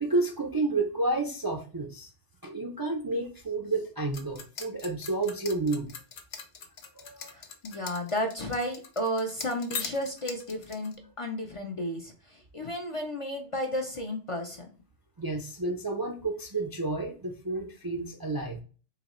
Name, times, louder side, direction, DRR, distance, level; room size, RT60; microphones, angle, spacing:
voice 1, 0.0-2.1 2.4-5.9 6.9-7.3 15.2-18.6, right 2 dB, 35° right, 0 dB, 0.4 m, -30 dB
sound 1, 4.1-10.9, left 6 dB, 85° left, 0.9 m, -40 dB
voice 2, 7.3-14.7, equal, 40° left, 3 dB, 0.5 m, -33 dB
3.9 x 3.1 x 3.0 m, 0.37 s
omnidirectional pair, 1.1 m